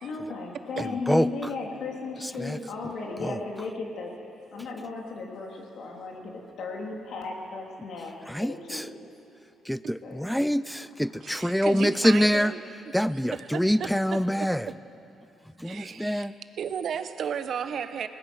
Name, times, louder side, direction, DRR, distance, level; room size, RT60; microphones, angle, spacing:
voice 1, 0.0-4.1 4.5-8.1 8.4-9.0 10.0-10.4 11.6-11.8, left 3 dB, 70° left, 0 dB, 3.1 m, -35 dB
voice 2, 0.8-1.3 2.4-2.6 3.2-3.3 8.3-8.8 9.7-12.5 12.9-14.7 15.6-16.3, equal, ahead, 16 dB, 0.5 m, -25 dB
voice 3, 11.2-12.6 12.9-13.0 13.3-14.5 15.6-16.3 16.6-18.1, right 7 dB, 60° right, 10 dB, 1.0 m, -34 dB
21.0 x 19.5 x 6.4 m, 2.9 s
cardioid pair, 90°, 0 cm